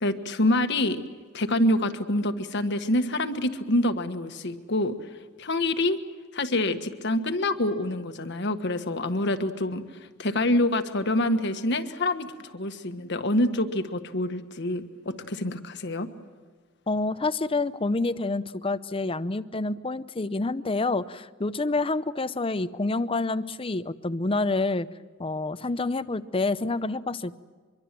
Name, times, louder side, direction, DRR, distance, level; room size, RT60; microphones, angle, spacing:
voice 1, 0.0-1.0 1.3-4.9 5.4-6.0 6.3-9.8 10.2-16.1, left 1 dB, 60° left, 8 dB, 1.5 m, -26 dB
voice 2, 16.9-24.9 25.2-27.4, left 3 dB, 25° left, 15 dB, 0.6 m, -28 dB
24.5 x 23.5 x 7.6 m, 1.5 s
head